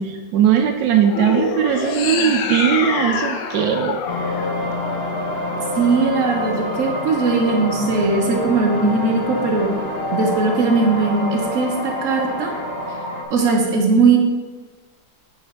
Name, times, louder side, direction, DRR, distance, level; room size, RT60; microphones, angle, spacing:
voice 1, 0.0-4.0, right 9 dB, 80° right, 5 dB, 1.2 m, -19 dB
sound 1, 1.0-5.4, left 6 dB, 90° left, 1.3 m, -26 dB
sound 2, 4.1-13.2, left 1 dB, 40° left, 1.0 m, -26 dB
voice 2, 5.8-9.7 10.1-12.6 13.3-14.2, right 4 dB, 50° right, 0 dB, 1.3 m, -19 dB
8.8 x 4.2 x 4.4 m, 1.4 s
omnidirectional pair, 1.9 m